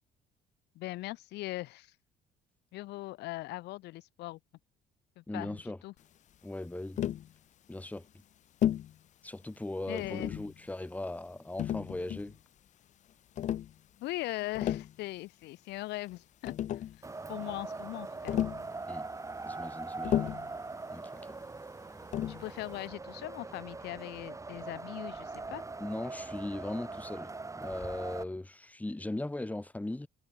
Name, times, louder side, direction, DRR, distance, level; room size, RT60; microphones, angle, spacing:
voice 1, 0.8-1.9 2.7-4.4 5.2-5.6 5.8-5.9 9.9-10.3 14.0-16.8 17.3-18.4 22.3-25.6, left 18 dB, 85° left, 3.5 m, -40 dB
voice 2, 5.3-5.8 6.4-7.0 7.7-8.1 9.2-12.4 18.9-19.1 19.4-20.3 20.9-21.2 25.8-27.3 27.6-30.1, left 2 dB, 10° left, 3.4 m, -38 dB
Tap, 7.0-7.3 8.6-8.9 10.0-10.5 11.6-12.4 13.4-13.7 14.4-14.9 16.1-16.2 16.4-17.0 18.3-18.7 20.0-20.5 22.1-22.5, left 11 dB, 45° left, 0.5 m, -32 dB
Wind, 17.0-28.2, right 3 dB, 20° right, 4.9 m, -42 dB
cardioid pair, 110°, 17 cm